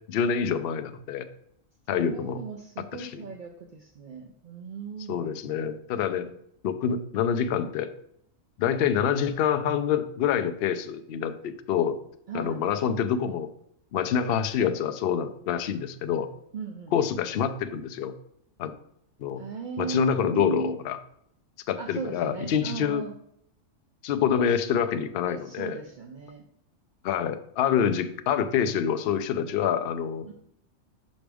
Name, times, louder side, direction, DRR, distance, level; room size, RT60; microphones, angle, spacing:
voice 1, 0.1-1.2 1.9-2.4 3.0-3.3 5.1-6.3 6.6-7.9 8.6-12.0 12.3-13.5 13.9-16.3 16.9-18.1 18.6-18.7 19.2-19.4 19.8-21.0 21.7-23.0 24.0-25.8 27.0-30.3, left 8 dB, 65° left, 9 dB, 0.6 m, -26 dB
voice 2, 1.9-5.3 12.3-12.6 16.5-17.1 19.4-20.7 21.8-23.1 24.5-24.7 25.3-26.4 30.3-30.4, right 5 dB, 60° right, 4 dB, 0.5 m, -37 dB
6.0 x 5.2 x 3.4 m, 0.71 s
omnidirectional pair, 1.4 m